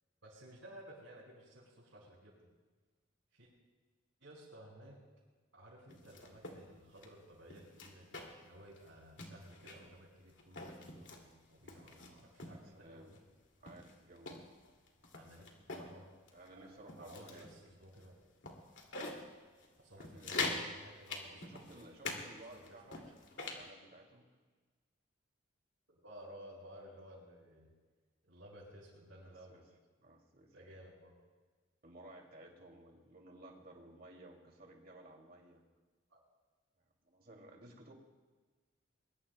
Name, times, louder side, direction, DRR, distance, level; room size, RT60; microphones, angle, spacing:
voice 1, 0.2-2.5 3.3-3.5 4.2-5.0 5.5-13.2 15.1-16.1 16.5-16.7 17.0-18.1 19.8-22.1 22.5-23.0 25.9-27.7 28.2-29.6 30.5-31.1 36.1-36.2, equal, 75° right, -8 dB, 5.1 m, -56 dB
sound 1, 5.9-6.6 7.0-7.1 7.5-8.5 8.8-8.9 9.2-9.9 10.4-11.2 11.7-12.6 13.1-13.2 13.7-15.9 16.3-16.5 16.9-17.5 18.0-18.1 18.4-19.2 19.6-19.7 20.0-20.7 21.1-22.2 22.5-23.6, left 3 dB, 65° left, 2.4 m, -43 dB
voice 2, 12.4-13.2 13.6-14.4 16.3-17.5 19.9-23.1 23.3-24.3 29.2-29.6 30.0-30.7 31.8-35.6 37.0-37.9, right 1 dB, 45° right, 1 dB, 2.4 m, -56 dB
22.5 x 22.0 x 2.2 m, 1.4 s
head